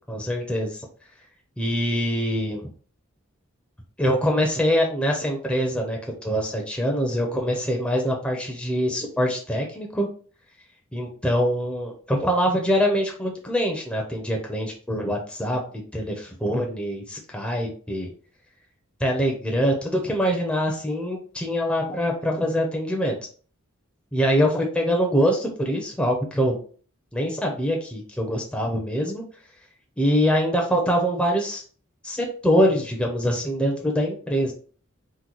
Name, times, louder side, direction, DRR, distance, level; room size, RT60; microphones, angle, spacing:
voice 1, 0.1-0.9 1.6-2.7 4.0-10.1 10.9-15.6 15.9-18.1 19.0-23.2 24.1-26.6 27.1-29.2 30.0-31.6 32.0-34.5, equal, 5° left, 0 dB, 0.4 m, -24 dB
3.7 x 2.1 x 2.9 m, 0.42 s
head